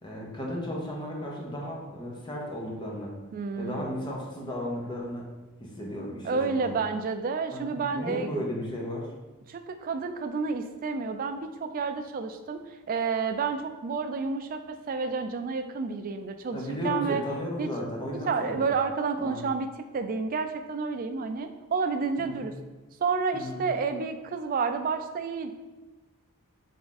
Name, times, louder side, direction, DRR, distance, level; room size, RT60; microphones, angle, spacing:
voice 1, 0.0-3.1 3.6-5.3 5.6-6.7 7.5-9.1 16.5-18.7 19.2-19.4 22.2-22.4 23.3-23.6, equal, 20° left, -2 dB, 0.8 m, -34 dB
voice 2, 3.3-4.1 6.2-8.3 9.5-16.6 16.8-17.2 17.6-17.7 18.3-22.5 23.0-25.5, right 5 dB, 40° right, 7 dB, 0.3 m, -30 dB
3.6 x 3.4 x 3.9 m, 1.1 s
head